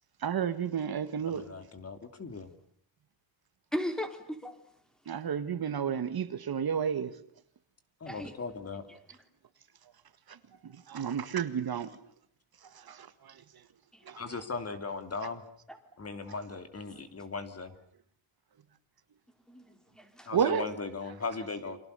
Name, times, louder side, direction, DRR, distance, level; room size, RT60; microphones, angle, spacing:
voice 1, 0.2-1.4 5.1-7.1 10.9-11.9 12.9-13.1 14.1-14.2 20.3-20.6, right 8 dB, 50° right, 1.7 m, -31 dB
voice 2, 1.3-2.5 8.0-8.8 14.2-15.4 16.0-17.7 20.2-21.8, left 4 dB, 30° left, 3.0 m, -38 dB
voice 3, 3.7-4.6 8.1-8.3 13.9-14.1 15.7-15.8 19.5-20.3, equal, ahead, 3.7 m, -37 dB
29.5 x 26.5 x 6.9 m
wide cardioid pair, 150°, 48 cm